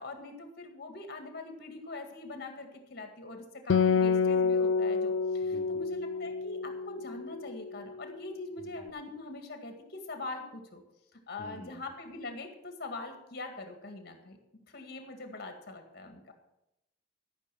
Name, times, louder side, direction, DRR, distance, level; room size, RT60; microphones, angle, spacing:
voice 1, 0.0-10.8 11.1-14.4 14.6-16.2, left 2 dB, 55° left, 5 dB, 2.0 m, -43 dB
Acoustic guitar, 3.7-7.4, left 5 dB, 80° left, 0.4 m, -28 dB
voice 2, 5.4-5.8 8.6-8.9 11.4-11.8, equal, 25° left, -2 dB, 1.4 m, -49 dB
13.5 x 6.2 x 7.5 m, 0.87 s
head